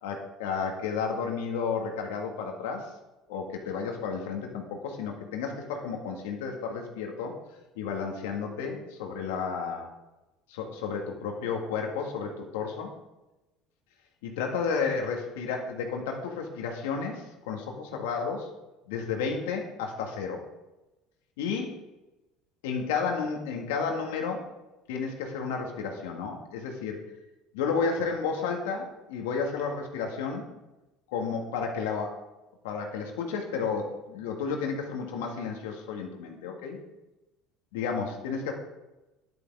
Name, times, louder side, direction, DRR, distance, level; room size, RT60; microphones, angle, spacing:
voice 1, 0.0-2.9 3.3-7.3 7.8-9.9 10.5-12.9 14.2-18.5 18.9-20.4 21.4-21.7 22.6-24.4 24.9-27.0 27.5-30.5 31.1-32.2 32.6-36.8 37.7-38.5, left 5 dB, 85° left, 2 dB, 1.9 m, -32 dB
10.5 x 9.5 x 3.7 m, 1.0 s
supercardioid pair, 95°, 0 cm